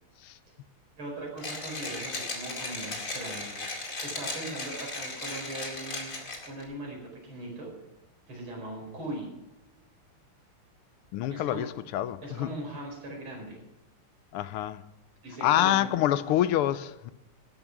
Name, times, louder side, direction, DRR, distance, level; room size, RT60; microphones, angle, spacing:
voice 1, 1.0-3.6 4.0-6.1 6.5-7.7 8.3-9.3 11.3-11.6 12.2-13.6 15.2-15.9, right 1 dB, 70° right, -1 dB, 5.7 m, -39 dB
Mechanisms, 1.4-6.6, left 2 dB, 35° left, 2.6 m, -36 dB
voice 2, 11.1-11.7 11.9-12.5 14.3-14.8 15.4-17.1, left 12 dB, 85° left, 15 dB, 1.6 m, -26 dB
13.5 x 11.0 x 6.0 m, 0.94 s
omnidirectional pair, 2.4 m